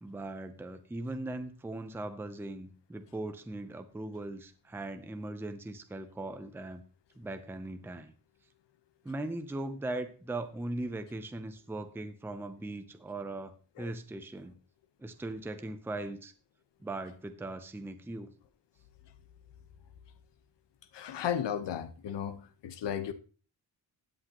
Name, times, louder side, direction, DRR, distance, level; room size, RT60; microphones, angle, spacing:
voice 1, 0.0-6.8 7.2-8.1 9.0-14.6 15.0-16.3 16.8-18.3, right 2 dB, 5° right, 0.6 m, -39 dB
voice 2, 20.9-23.1, left 9 dB, 75° left, 1.1 m, -34 dB
15.5 x 8.3 x 3.0 m
wide cardioid pair, 160°, 43 cm